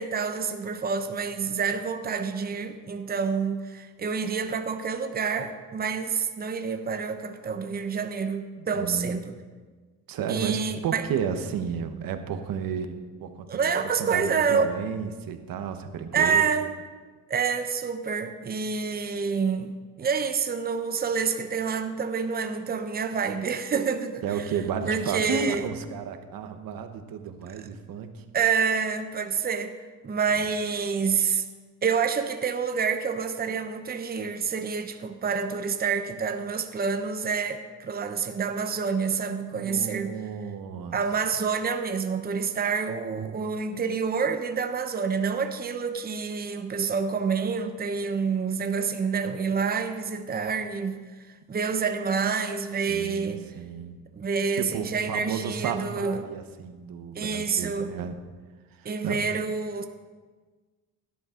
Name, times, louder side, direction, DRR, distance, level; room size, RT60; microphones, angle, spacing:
voice 1, 0.0-9.4 10.3-11.1 13.5-14.7 16.1-16.8 17.3-24.5 24.9-25.7 27.6-27.7 28.3-29.7 30.0-31.4 31.8-40.2 40.9-53.4 54.2-56.3 57.1-57.9 58.8-59.9, right 5 dB, 25° right, 7 dB, 0.8 m, -28 dB
voice 2, 8.6-9.2 10.1-13.7 14.0-16.5 24.2-28.2 39.5-41.0 52.9-54.0 54.5-58.2 58.8-59.2, right 7 dB, 80° right, 7 dB, 1.2 m, -32 dB
17.0 x 11.0 x 3.8 m, 1.4 s
cardioid pair, 115°, 34 cm